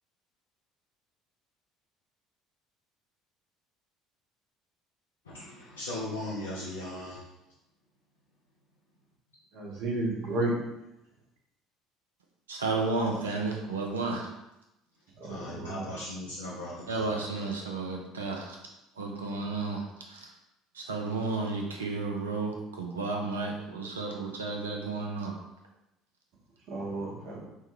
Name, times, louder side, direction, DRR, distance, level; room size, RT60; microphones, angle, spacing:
voice 1, 5.3-7.2 15.2-17.2, left 1 dB, 80° left, -7 dB, 0.5 m, -38 dB
voice 2, 9.5-10.5 15.2-15.9 26.7-27.5, right 2 dB, 55° right, -2 dB, 0.9 m, -32 dB
voice 3, 12.5-14.3 16.9-18.6 19.0-19.8 20.8-25.4, right 3 dB, 80° right, 1 dB, 0.5 m, -32 dB
3.5 x 2.2 x 3.1 m, 0.91 s
figure-of-eight pair, 60°, 0 cm